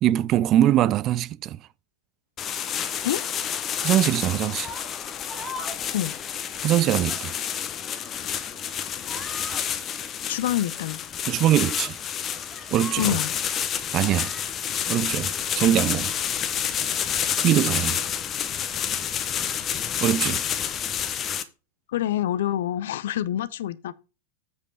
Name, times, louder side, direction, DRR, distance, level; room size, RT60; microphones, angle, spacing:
voice 1, 0.0-1.6 3.8-4.7 6.6-7.3 11.3-12.0 12.7-13.2 13.9-14.3 14.9-16.1 17.4-18.0 20.0-20.4, right 12 dB, 35° right, 0.3 m, -22 dB
sound 1, 2.4-21.4, left 8 dB, 30° left, 0.9 m, -29 dB
sound 2, 4.6-4.9 5.3-5.9 6.2-6.4 6.8-7.2 7.7-8.2 8.6-8.8 9.0-9.6 10.7-10.9 11.5-11.9 12.3-13.2 14.0-14.5, left 1 dB, ahead, 1.6 m, -41 dB
voice 2, 10.3-11.0 13.0-13.3 21.9-23.9, left 12 dB, 55° left, 0.6 m, -26 dB
8.1 x 5.2 x 5.4 m
figure-of-eight pair, 90°, 0 cm